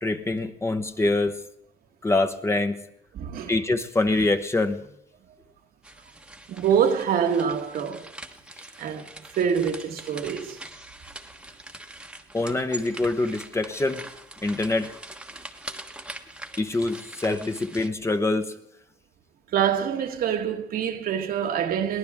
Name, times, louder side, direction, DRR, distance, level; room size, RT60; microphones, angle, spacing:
voice 1, 0.0-1.4 2.0-2.8 3.5-4.8 12.3-14.0 14.4-14.9 16.6-18.6, left 2 dB, 15° left, 1.0 m, -25 dB
voice 2, 3.1-3.5 6.5-8.1 8.8-9.1 9.3-10.6 19.5-22.0, right 8 dB, 60° right, 1.5 m, -25 dB
sound 1, 5.8-17.9, right 1 dB, 5° right, 1.2 m, -43 dB
22.0 x 18.0 x 3.6 m
cardioid pair, 110°, 17 cm